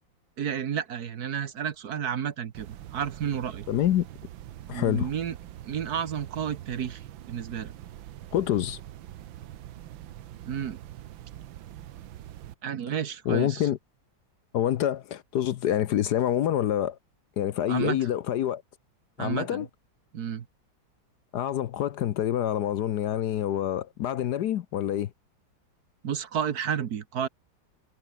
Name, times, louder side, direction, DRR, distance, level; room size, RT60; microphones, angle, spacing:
voice 1, 0.4-2.7 2.9-3.6 4.7-5.3 5.6-7.7 10.5-10.8 12.6-13.6 17.7-18.0 19.2-19.6 20.1-20.5 26.0-27.3, right 8 dB, 55° right, 1.5 m, -31 dB
sound 1, 2.5-12.5, right 12 dB, 85° right, 1.7 m, -44 dB
voice 2, 3.7-4.1 4.7-5.1 8.3-8.8 13.3-13.8 14.5-17.0 17.4-18.6 19.2-19.7 21.3-25.1, left 11 dB, 65° left, 1.2 m, -26 dB
omnidirectional pair, 2.1 m